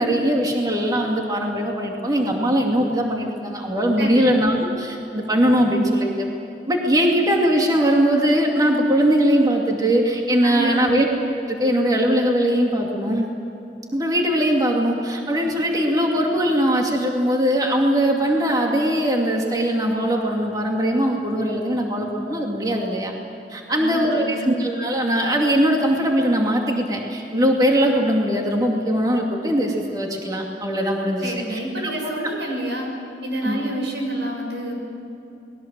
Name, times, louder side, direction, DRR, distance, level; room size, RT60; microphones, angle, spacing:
voice 1, 0.0-6.3 6.7-11.1 11.3-13.2 13.9-23.1 23.5-32.3 33.4-33.6, equal, 20° right, 0 dB, 2.4 m, -21 dB
voice 2, 4.0-4.3 10.4-11.0 23.7-24.5 31.2-32.9 33.2-34.7, right 1 dB, 90° right, 1 dB, 6.6 m, -28 dB
28.5 x 21.0 x 7.6 m, 2.9 s
head